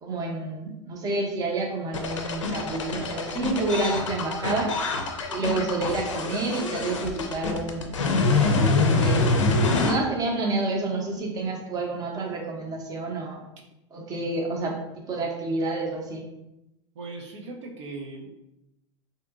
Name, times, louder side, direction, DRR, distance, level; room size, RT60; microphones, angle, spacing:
voice 1, 0.0-4.7 5.3-9.3 9.8-13.4 13.9-14.8 15.1-16.3, right 2 dB, 25° right, 1 dB, 0.6 m, -29 dB
sound 1, 1.9-9.9, left 3 dB, 80° left, 0.4 m, -25 dB
voice 2, 16.9-18.4, right 3 dB, 70° right, 1 dB, 0.6 m, -38 dB
2.7 x 2.6 x 2.4 m, 0.88 s
hypercardioid pair, 95°, 16 cm